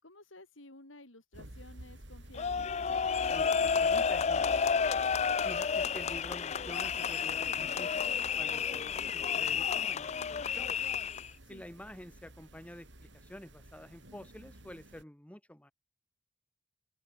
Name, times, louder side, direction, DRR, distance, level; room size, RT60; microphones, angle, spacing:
voice 1, 0.0-2.7 11.4-11.6, left 2 dB, 90° left, 5.0 m, -53 dB
sound 1, 1.3-15.0, right 1 dB, 65° right, 4.2 m, -51 dB
sound 2, 2.4-11.3, left 6 dB, 35° left, 0.4 m, -31 dB
voice 2, 3.3-4.9 5.4-10.7 11.5-12.9 13.1-15.7, equal, 5° left, 1.0 m, -49 dB
open air
head